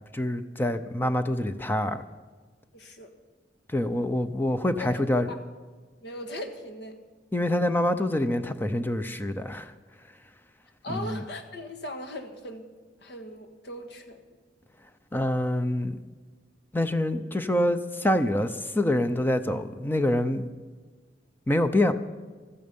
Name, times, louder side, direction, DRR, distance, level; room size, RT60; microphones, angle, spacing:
voice 1, 0.1-2.0 3.7-5.3 7.3-9.7 10.9-11.2 15.1-16.0 16.7-20.5 21.5-21.9, left 1 dB, 10° left, 9 dB, 0.6 m, -26 dB
voice 2, 2.7-3.1 4.8-5.0 5.3-5.4 6.0-7.0 10.8-12.6 13.0-14.2, left 1 dB, 65° left, 6 dB, 1.7 m, -39 dB
15.5 x 14.0 x 5.4 m, 1.4 s
head